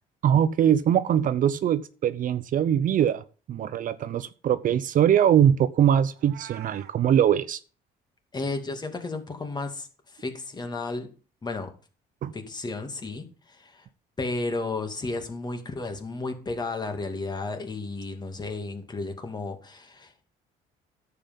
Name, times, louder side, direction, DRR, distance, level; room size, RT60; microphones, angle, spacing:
voice 1, 0.2-7.6 12.2-12.3, right 9 dB, 50° right, 0.7 m, -22 dB
Meow, 6.1-6.9, right 11 dB, 75° right, 1.5 m, -45 dB
voice 2, 8.3-11.1 11.4-11.7 12.3-13.9 14.2-20.2, left 3 dB, 25° left, 2.4 m, -33 dB
10.5 x 7.8 x 5.4 m
cardioid pair, 110°, 17 cm